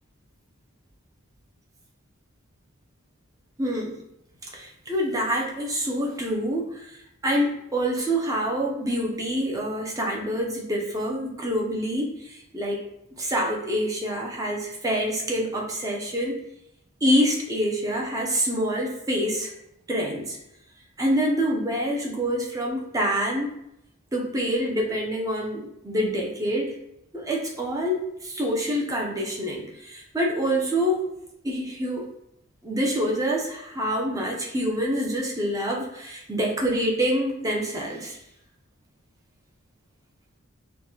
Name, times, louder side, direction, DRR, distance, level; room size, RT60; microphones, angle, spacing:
voice 1, 3.6-4.0 4.5-7.0 7.2-12.8 13.2-16.3 17.0-19.5 19.9-20.4 21.0-23.6 24.1-26.7 27.1-31.1 31.4-32.1 32.6-38.2, equal, 15° right, -1 dB, 0.6 m, -26 dB
4.5 x 2.2 x 2.8 m, 0.82 s
head